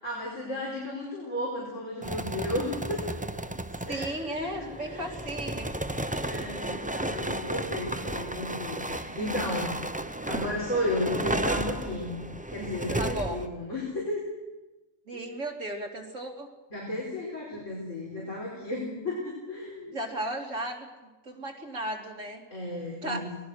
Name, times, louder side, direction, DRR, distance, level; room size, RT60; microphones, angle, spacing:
voice 1, 0.0-3.0 3.9-5.1 6.1-9.7 10.3-12.2 12.5-14.2 15.1-15.2 16.7-20.0 22.5-23.3, left 1 dB, 60° left, -4 dB, 5.3 m, -33 dB
sound 1, 2.0-13.5, right 1 dB, 10° right, 0.6 m, -33 dB
voice 2, 3.9-5.7 6.1-6.5 12.9-13.4 15.1-16.5 19.9-22.4 23.0-23.2, right 1 dB, 65° right, 1 dB, 3.2 m, -35 dB
25.5 x 19.5 x 6.5 m, 1.1 s
omnidirectional pair, 1.4 m